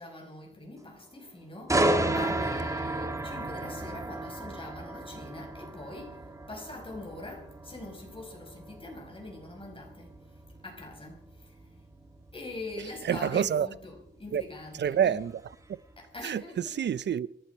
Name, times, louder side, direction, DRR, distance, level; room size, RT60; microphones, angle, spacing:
voice 1, 0.0-10.2 10.6-11.9 12.3-15.2 16.0-16.8, left 2 dB, 25° left, 5.3 m, -43 dB
sound 1, 1.7-15.5 16.0-16.2, right 1 dB, 15° right, 1.9 m, -33 dB
voice 2, 13.0-13.7 14.3-14.4 14.8-15.8 16.2-17.3, right 8 dB, 60° right, 0.6 m, -28 dB
26.5 x 11.5 x 4.6 m
wide cardioid pair, 105°, 20 cm